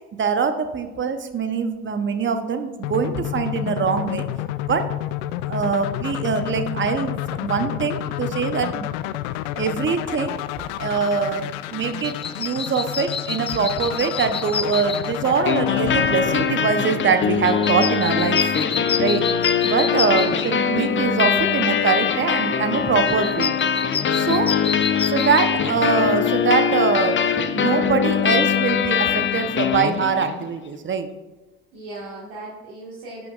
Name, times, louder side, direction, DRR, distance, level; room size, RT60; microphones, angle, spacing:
voice 1, 0.1-4.2 4.7-4.9 5.5-7.1 7.4-8.9 9.6-10.4 10.8-18.5 19.0-19.3 19.6-23.5 24.1-24.6 25.1-27.2 27.5-31.1, right 6 dB, 35° right, 8 dB, 0.9 m, -23 dB
sound 1, 2.8-17.8, left 14 dB, 75° left, 0.5 m, -30 dB
sound 2, 10.3-26.9, left 6 dB, 20° left, 0.3 m, -31 dB
sound 3, 15.4-30.4, left 7 dB, 35° left, 0.7 m, -22 dB
voice 2, 19.8-20.3 24.5-24.8 31.7-33.3, right 2 dB, 65° right, -6 dB, 2.0 m, -37 dB
11.5 x 5.9 x 2.5 m, 1.2 s
hypercardioid pair, 60°, 35 cm